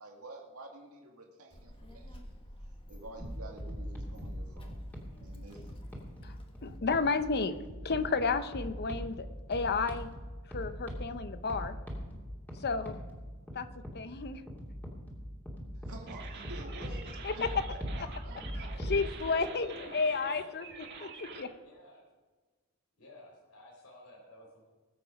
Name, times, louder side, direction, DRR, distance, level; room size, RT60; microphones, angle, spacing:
voice 1, 0.0-2.4 2.9-4.8 5.2-5.8 15.7-17.5 17.9-18.7, right 2 dB, 80° right, 0 dB, 2.0 m, -49 dB
Child speech kid speaking, 1.5-6.8, equal, 25° left, 1.5 m, -52 dB
sound 1, 3.2-19.0, equal, 5° left, 2.7 m, -42 dB
voice 2, 6.6-7.6 7.8-10.1 10.5-11.8 12.5-12.9 13.5-13.7 13.9-14.4 17.2-17.6 18.8-20.6 21.0-21.5, left 4 dB, 50° left, 11 dB, 0.7 m, -32 dB
sound 2, 16.1-21.4, right 5 dB, 50° right, 1.6 m, -47 dB
voice 3, 19.0-22.0 23.0-24.6, left 1 dB, 70° left, -1 dB, 3.9 m, -54 dB
20.0 x 8.1 x 5.2 m, 1.3 s
head